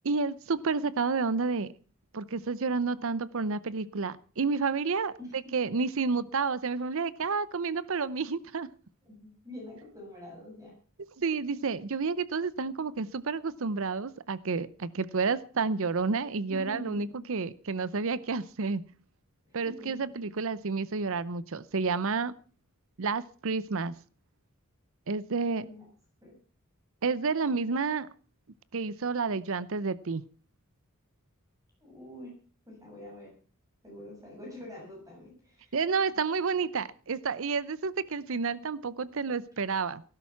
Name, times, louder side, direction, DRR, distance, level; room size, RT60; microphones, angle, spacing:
voice 1, 0.0-1.7 2.1-5.1 5.5-8.7 11.2-18.8 19.5-22.4 23.0-23.9 25.1-25.7 27.0-28.1 28.7-30.2 35.7-40.0, right 4 dB, 65° right, 0.7 m, -30 dB
voice 2, 9.4-10.7 16.5-17.2 19.6-20.1 25.6-25.9 26.2-26.4 31.8-32.3 32.7-33.3 33.8-35.7, left 1 dB, 15° right, 7.3 m, -45 dB
17.5 x 11.5 x 5.8 m
head